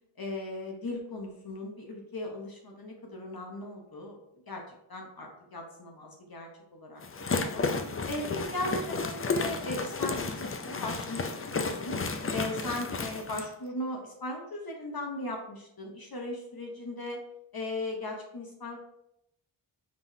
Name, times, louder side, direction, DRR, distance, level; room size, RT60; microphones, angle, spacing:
voice 1, 0.2-4.2 4.5-7.7 8.1-12.0 12.3-17.2 17.5-18.8, left 1 dB, 45° left, 1 dB, 0.9 m, -38 dB
sound 1, 7.0-13.5, left 4 dB, 30° left, 0.4 m, -32 dB
5.2 x 3.7 x 2.7 m, 0.78 s
wide cardioid pair, 70°, 50 cm